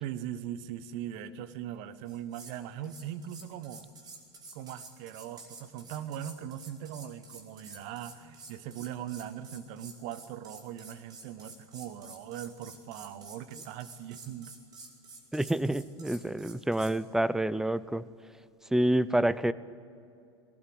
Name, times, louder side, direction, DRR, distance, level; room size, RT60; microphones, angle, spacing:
voice 1, 0.0-3.9 4.5-14.5, right 10 dB, 50° right, 13 dB, 1.3 m, -40 dB
sound 1, 2.1-2.6 2.8-17.0, right 3 dB, 30° right, 4.8 m, -50 dB
voice 2, 15.3-18.0 18.7-19.5, right 1 dB, 5° right, 17 dB, 0.7 m, -28 dB
21.5 x 18.5 x 8.0 m, 2.5 s
figure-of-eight pair, 85°, 14 cm